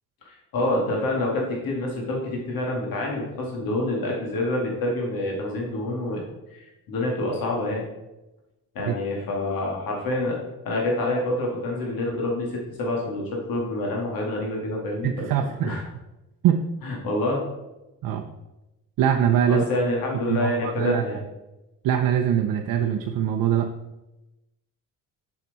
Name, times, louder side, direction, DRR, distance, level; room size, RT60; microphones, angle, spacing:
voice 1, 0.2-6.2 6.5-7.9 8.8-10.4 10.6-13.2 13.5-15.8 16.8-17.4 19.5-21.2, left 1 dB, 70° left, -2 dB, 2.1 m, -27 dB
voice 2, 15.0-15.8 16.4-16.7 18.0-18.3 19.0-19.7 20.3-21.0 21.8-23.7, right 9 dB, 70° right, 4 dB, 0.7 m, -23 dB
7.2 x 6.0 x 4.0 m, 0.98 s
cardioid pair, 110°, 36 cm